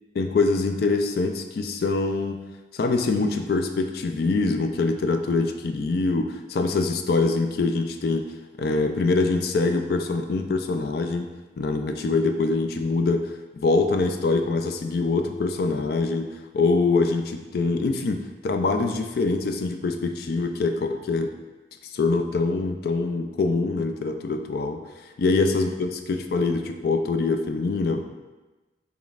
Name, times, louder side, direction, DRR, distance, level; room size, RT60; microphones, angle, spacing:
voice 1, 0.2-2.4 2.7-8.3 8.6-11.3 11.6-21.3 21.8-24.8 25.2-28.1, left 3 dB, 55° left, 6 dB, 0.3 m, -24 dB
5.1 x 3.0 x 2.4 m, 1.2 s
head